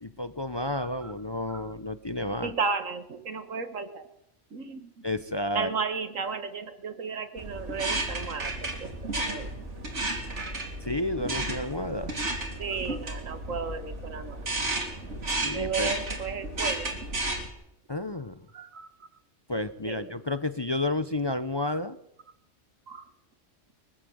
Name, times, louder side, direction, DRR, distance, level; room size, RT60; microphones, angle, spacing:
voice 1, 0.0-2.5 5.0-5.7 10.8-12.2 15.4-16.0 17.9-18.4 19.5-22.0, left 2 dB, 25° left, 11 dB, 0.7 m, -31 dB
voice 2, 0.8-1.1 1.5-1.6 2.4-4.1 4.5-4.9 5.5-9.5 10.1-10.5 12.6-14.5 15.5-17.0 18.5-18.9 19.8-20.1 21.7-21.8 22.9-23.1, right 5 dB, 85° right, 10 dB, 1.9 m, -34 dB
sound 1, 7.4-17.5, right 2 dB, 65° right, 3.3 m, -33 dB
22.5 x 15.0 x 7.9 m, 0.80 s
omnidirectional pair, 1.3 m